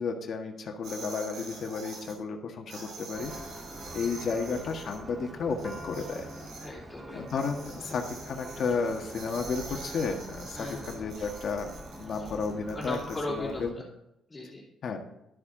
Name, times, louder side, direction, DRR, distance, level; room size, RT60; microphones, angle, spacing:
voice 1, 0.0-3.3 3.9-6.3 7.1-11.7 12.0-13.0 13.3-13.7 14.8-15.0, left 5 dB, 55° left, 3 dB, 1.6 m, -32 dB
sound 1, 0.8-2.1 2.7-5.0 5.5-6.7 7.3-13.2, right 3 dB, 75° right, 4.3 m, -45 dB
Church bell, 3.1-13.7, right 1 dB, 20° right, 1.1 m, -45 dB
voice 2, 6.6-7.3 10.5-10.9 12.7-13.6 14.3-14.6, left 2 dB, 20° left, -5 dB, 2.8 m, -37 dB
12.5 x 8.6 x 3.9 m, 0.84 s
cardioid pair, 130°, 0 cm